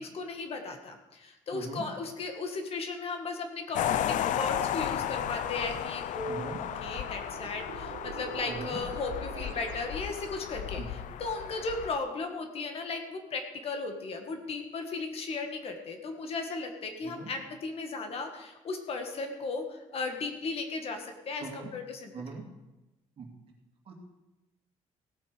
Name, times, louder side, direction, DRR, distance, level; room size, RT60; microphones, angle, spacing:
voice 1, 0.0-22.1, left 3 dB, 50° left, 5 dB, 1.7 m, -36 dB
voice 2, 1.5-1.8 6.3-6.6 8.5-8.8 10.7-11.1 17.0-17.3 21.4-21.7 22.1-22.4 23.2-23.3 23.9-24.0, right 4 dB, 45° right, 0 dB, 2.6 m, -41 dB
sound 1, 3.7-12.0, left 11 dB, 75° left, 0.5 m, -34 dB
sound 2, 4.8-10.5, right 11 dB, 85° right, 0.8 m, -46 dB
17.5 x 8.6 x 5.0 m, 1.0 s
cardioid pair, 160°, 13 cm